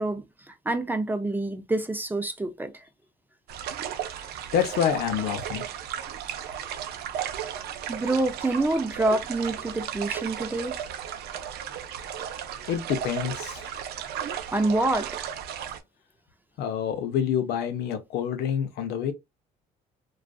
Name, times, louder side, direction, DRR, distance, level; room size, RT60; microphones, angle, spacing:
voice 1, 0.0-2.7 7.9-10.8 14.5-15.1, right 2 dB, 10° right, 0.4 m, -27 dB
sound 1, 3.5-15.8, right 9 dB, 70° right, 0.5 m, -35 dB
voice 2, 4.2-5.7 12.7-13.7 16.6-19.1, left 8 dB, 75° left, 0.6 m, -27 dB
2.5 x 2.4 x 2.3 m
cardioid pair, 110°, 17 cm